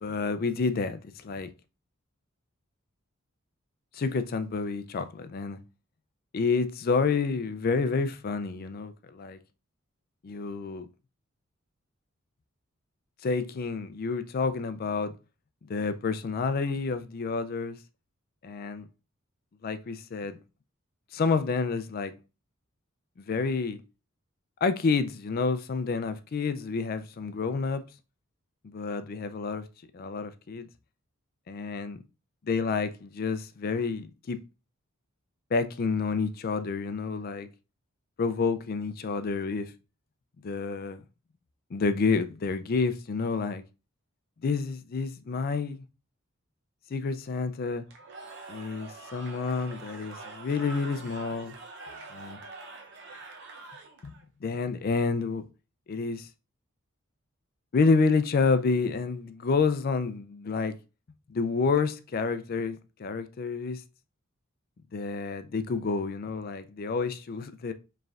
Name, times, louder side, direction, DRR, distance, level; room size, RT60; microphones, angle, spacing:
voice 1, 0.0-1.5 3.9-5.6 6.3-9.4 10.2-10.9 13.2-15.1 15.7-17.8 18.4-18.9 19.6-20.4 21.1-22.1 23.2-23.8 24.6-27.8 28.6-29.6 29.9-30.7 31.5-32.0 32.5-34.4 35.5-37.5 38.2-39.7 40.4-41.0 41.7-43.6 44.4-45.8 46.9-47.8 48.5-51.6 52.1-52.4 54.0-54.1 54.4-55.4 55.9-56.3 57.7-60.8 61.3-63.8 64.9-67.7, left 4 dB, 45° left, 0.4 m, -29 dB
Cheering / Crowd, 47.9-54.2, right 3 dB, 55° right, 0.6 m, -45 dB
4.9 x 3.2 x 2.4 m
head